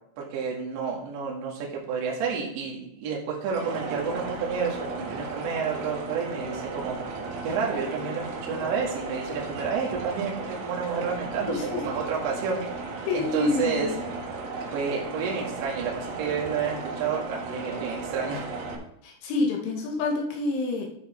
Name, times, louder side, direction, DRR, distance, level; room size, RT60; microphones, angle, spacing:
voice 1, 0.2-7.0 7.4-12.9 13.1-13.9 14.7-18.5, right 6 dB, 65° right, -2 dB, 4.0 m, -30 dB
sound 1, 3.5-18.8, right 3 dB, 90° right, 4.6 m, -35 dB
voice 2, 11.5-11.8 13.1-14.0 19.0-20.9, left 3 dB, 75° left, 0 dB, 3.9 m, -27 dB
12.0 x 5.1 x 4.4 m, 0.75 s
omnidirectional pair, 5.9 m